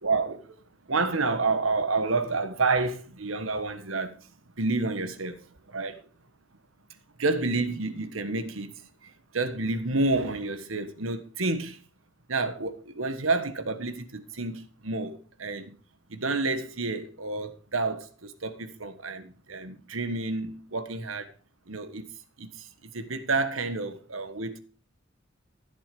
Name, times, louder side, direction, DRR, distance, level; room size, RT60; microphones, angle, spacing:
voice 1, 0.0-0.6 0.9-4.2 4.6-6.0 7.2-11.8 12.3-15.8 16.1-21.3 21.7-22.1 22.4-24.6, right 3 dB, 85° right, 1.5 m, -29 dB
14.0 x 8.3 x 5.3 m
head